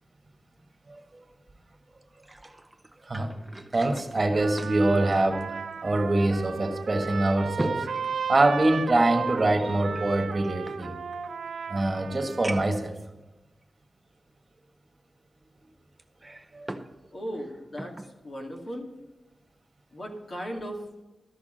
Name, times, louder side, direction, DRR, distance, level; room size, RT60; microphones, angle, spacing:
sound 1, 2.0-6.0 6.4-6.5 7.0-9.0 9.9-11.3 11.9-12.0 12.4-12.9 13.6-13.7 16.0-16.9 17.3-18.1 18.6-18.8, right 1 dB, 10° right, 0.8 m, -40 dB
voice 1, 3.7-5.5 5.8-7.9 8.3-10.9 11.7-12.9 16.5-16.7, right 2 dB, 30° right, 4 dB, 1.6 m, -24 dB
Trumpet, 4.3-12.8, right 6 dB, 80° right, 0.8 m, -35 dB
voice 2, 17.1-18.9 19.9-20.8, equal, 45° left, 0 dB, 2.3 m, -37 dB
13.5 x 6.1 x 7.7 m, 1.1 s
wide cardioid pair, 130°, 0 cm